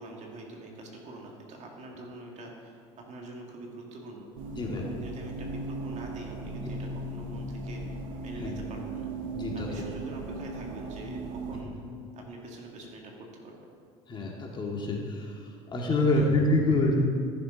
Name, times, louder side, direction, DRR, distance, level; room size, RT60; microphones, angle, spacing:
voice 1, 0.0-4.3 4.9-8.0 8.2-9.1 9.5-11.7 12.1-13.5 16.1-16.3, right 2 dB, 45° right, -1 dB, 2.3 m, -44 dB
sound 1, 4.4-11.6, right 2 dB, 85° right, 1.3 m, -37 dB
voice 2, 4.5-4.9 8.4-8.5 9.3-9.7 14.1-17.0, left 2 dB, 30° left, -1 dB, 2.1 m, -27 dB
14.5 x 6.9 x 4.0 m, 2.2 s
supercardioid pair, 95°, 16 cm